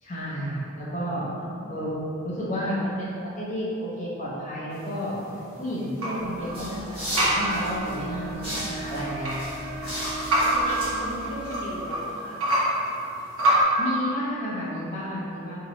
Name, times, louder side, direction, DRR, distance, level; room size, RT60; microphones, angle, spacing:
voice 1, 0.0-1.3 1.7-1.9 2.2-5.2 5.6-9.4 9.8-9.9 13.8-15.7, equal, 35° left, -8 dB, 0.8 m, -31 dB
voice 2, 1.0-1.7 7.8-8.6 10.4-12.4, equal, 70° left, -4 dB, 0.6 m, -38 dB
sound 1, 4.7-13.6, right 1 dB, 80° right, 0.9 m, -28 dB
sound 2, 6.2-11.7, equal, 25° right, 1.5 m, -36 dB
Wind instrument woodwind instrument, 7.1-11.4, right 3 dB, 45° right, 0.4 m, -40 dB
3.0 x 2.6 x 4.0 m, 2.8 s
head